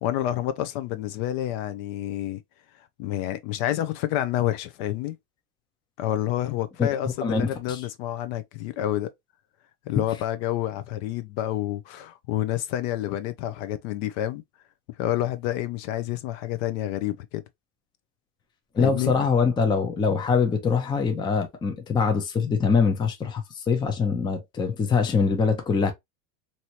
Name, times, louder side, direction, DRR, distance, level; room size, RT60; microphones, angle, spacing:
voice 1, 0.0-2.4 3.0-5.2 6.0-9.1 9.9-14.4 15.0-17.4 18.8-19.3, left 13 dB, 55° left, 0.5 m, -28 dB
voice 2, 18.7-25.9, left 5 dB, 10° left, 0.5 m, -23 dB
2.9 x 2.7 x 2.8 m
supercardioid pair, 140°, 42 cm